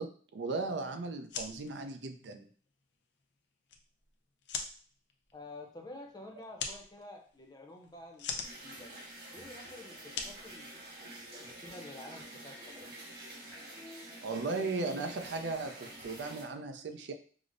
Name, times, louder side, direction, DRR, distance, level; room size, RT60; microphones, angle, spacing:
voice 1, 0.0-2.5 14.2-17.1, right 3 dB, 85° right, 7 dB, 0.4 m, -37 dB
sound 1, 1.1-11.3, left 5 dB, 85° left, 0.5 m, -45 dB
voice 2, 5.3-8.9 9.3-13.0 13.5-14.3, left 2 dB, 20° left, 2 dB, 0.6 m, -50 dB
sound 2, 8.4-16.4, right 1 dB, 60° right, 1.5 m, -48 dB
4.9 x 2.0 x 2.5 m, 0.43 s
head